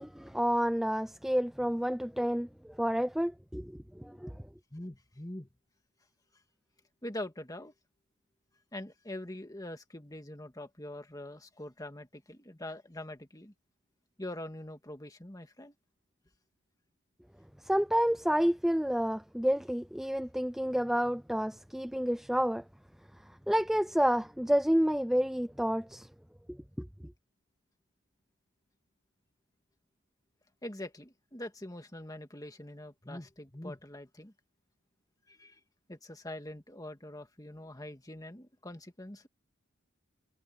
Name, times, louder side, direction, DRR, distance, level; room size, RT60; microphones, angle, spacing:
voice 1, 0.0-4.4 17.6-22.6 23.5-26.1 26.8-26.9, equal, ahead, 0.4 m, -29 dB
voice 2, 4.7-5.5 7.0-7.7 8.7-13.5 14.2-15.7 30.6-34.3 35.3-35.6 35.9-39.3, left 1 dB, 15° left, 1.9 m, -43 dB
head